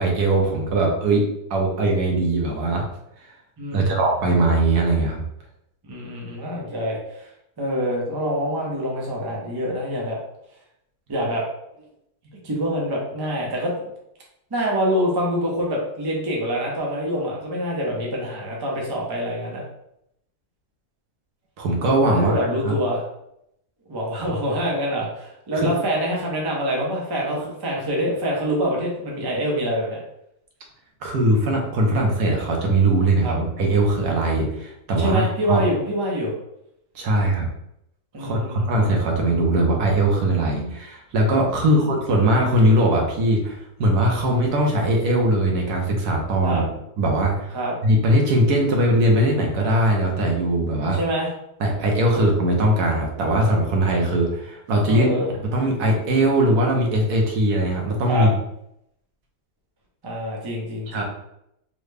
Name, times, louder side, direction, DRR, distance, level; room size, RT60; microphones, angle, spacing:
voice 1, 0.0-2.8 3.2-3.3 3.7-5.2 21.6-22.3 22.6-22.7 24.1-24.3 25.6-25.7 31.0-35.6 36.9-37.5 38.2-46.6 47.0-47.5 47.8-51.0 51.6-55.1 55.4-58.4 60.9-61.0, right 1 dB, 80° right, 0 dB, 1.3 m, -20 dB
voice 2, 3.6-4.0 5.8-7.3 7.6-10.2 11.1-11.4 12.4-13.7 14.5-19.6 22.1-23.0 23.9-30.0 33.2-33.3 35.0-36.3 38.1-38.8 41.6-41.8 46.4-46.6 47.5-47.7 50.9-51.3 54.9-55.3 58.1-58.3 60.0-61.0, equal, 30° right, -3 dB, 0.4 m, -25 dB
3.7 x 2.1 x 3.3 m, 0.79 s
omnidirectional pair, 1.6 m